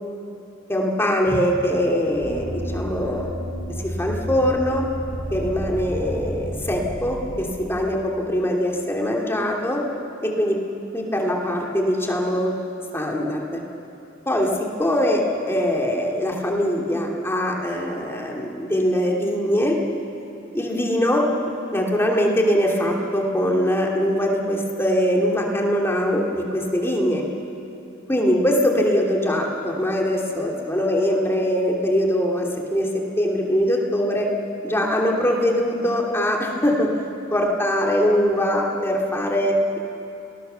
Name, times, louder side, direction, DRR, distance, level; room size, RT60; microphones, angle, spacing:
voice 1, 0.7-3.3 3.8-4.8 5.3-9.8 10.2-10.6 10.9-12.6 12.9-13.6 14.3-14.5 14.8-19.8 20.5-21.3 21.7-27.2 28.1-34.3 34.6-36.9 37.3-39.8, equal, 10° left, -1 dB, 2.7 m, -22 dB
sound 1, 2.2-7.4, equal, 90° right, 7.7 m, -31 dB
30.0 x 19.5 x 6.9 m, 2.9 s
head